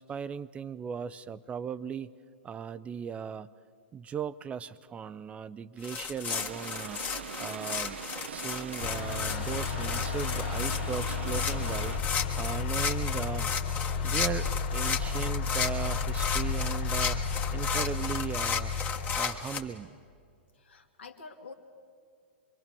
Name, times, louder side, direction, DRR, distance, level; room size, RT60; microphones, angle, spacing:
voice 1, 0.0-2.1 2.4-3.5 3.9-7.0 7.4-8.0 8.3-12.0 12.4-13.5 14.0-17.2 17.5-18.7 19.2-20.0, right 7 dB, 20° right, 16 dB, 0.5 m, -37 dB
sound 1, 5.8-19.6, left 6 dB, 25° left, 1.5 m, -34 dB
sound 2, 6.2-12.0, right 8 dB, 80° right, 0.6 m, -42 dB
sound 3, 8.8-19.2, left 5 dB, 50° left, 1.3 m, -32 dB
voice 2, 20.6-21.5, left 4 dB, 80° left, 5 dB, 2.2 m, -47 dB
24.5 x 23.5 x 6.9 m, 2.3 s
hypercardioid pair, 115°, 6 cm